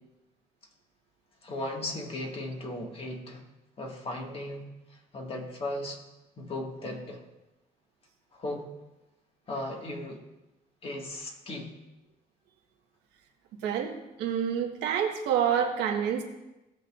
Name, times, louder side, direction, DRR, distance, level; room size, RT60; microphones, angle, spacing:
voice 1, 1.4-3.4 3.8-4.6 5.1-6.0 6.4-7.2 8.3-8.6 9.5-10.2 10.8-11.7, left 1 dB, 35° left, 1 dB, 2.0 m, -36 dB
voice 2, 13.6-13.9 14.2-16.2, right 8 dB, 90° right, 1 dB, 1.6 m, -27 dB
18.0 x 6.6 x 2.5 m, 0.98 s
cardioid pair, 110°, 17 cm